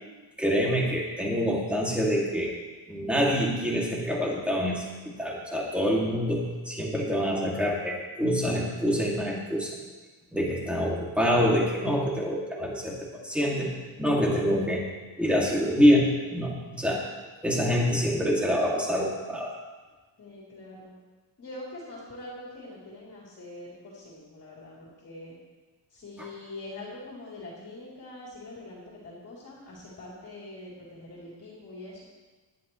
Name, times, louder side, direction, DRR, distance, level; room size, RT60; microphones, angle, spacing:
voice 1, 0.4-2.5 2.9-9.8 10.3-14.8 15.2-17.0 17.4-19.5 26.2-26.3, equal, ahead, -3 dB, 2.3 m, -26 dB
voice 2, 20.2-21.0 21.4-25.3 25.9-32.0, left 2 dB, 35° left, -6 dB, 3.1 m, -44 dB
19.0 x 11.5 x 3.1 m, 1.3 s
cardioid pair, 175°, 46 cm